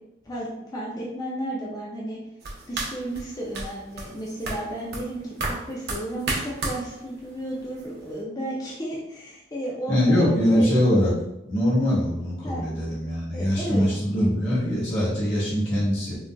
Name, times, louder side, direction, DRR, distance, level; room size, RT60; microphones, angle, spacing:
voice 1, 0.3-2.2 2.7-10.7 12.4-12.6 13.3-13.9, right 1 dB, 20° left, -4 dB, 0.4 m, -33 dB
sound 1, 2.4-8.2, right 2 dB, 60° right, 0.6 m, -34 dB
voice 2, 9.9-11.1 11.4-16.2, equal, 75° left, -7 dB, 1.4 m, -22 dB
3.8 x 2.4 x 2.2 m, 0.86 s
head